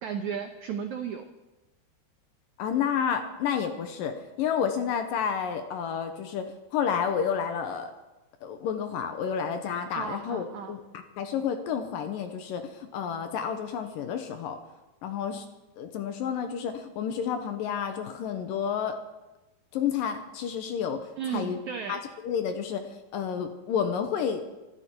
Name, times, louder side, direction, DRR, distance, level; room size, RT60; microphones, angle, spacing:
voice 1, 0.0-1.3 9.9-10.8 21.2-22.0, right 7 dB, 90° right, 5 dB, 1.7 m, -34 dB
voice 2, 2.6-7.9 8.4-14.6 15.0-15.5 15.8-19.0 19.7-21.6 21.9-22.9 23.1-24.4, left 7 dB, 70° left, 7 dB, 2.3 m, -30 dB
25.5 x 11.0 x 4.5 m, 1.1 s
omnidirectional pair, 4.7 m